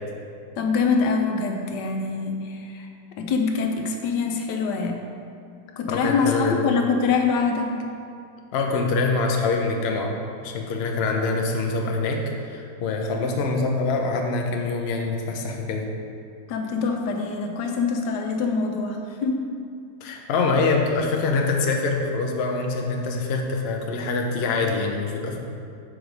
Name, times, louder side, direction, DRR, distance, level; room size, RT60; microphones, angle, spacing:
voice 1, 0.6-2.9 3.2-5.0 5.8-7.7 16.5-19.4, left 4 dB, 85° left, 3 dB, 1.3 m, -24 dB
voice 2, 5.9-6.7 8.5-10.1 10.4-15.9 20.0-25.4, left 3 dB, 60° left, 1 dB, 0.7 m, -25 dB
4.9 x 4.7 x 5.1 m, 2.4 s
omnidirectional pair, 1.8 m